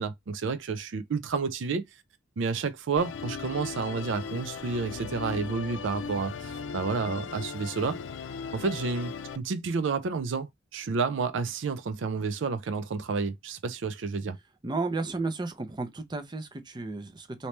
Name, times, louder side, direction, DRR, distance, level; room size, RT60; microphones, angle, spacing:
voice 1, 0.0-1.8 2.4-8.0 8.5-14.4, right 4 dB, 70° right, 0.4 m, -30 dB
Musical instrument, 3.0-9.4, left 5 dB, 75° left, 0.4 m, -38 dB
voice 2, 14.6-17.5, right 3 dB, 25° right, 0.5 m, -33 dB
3.1 x 2.8 x 3.2 m
head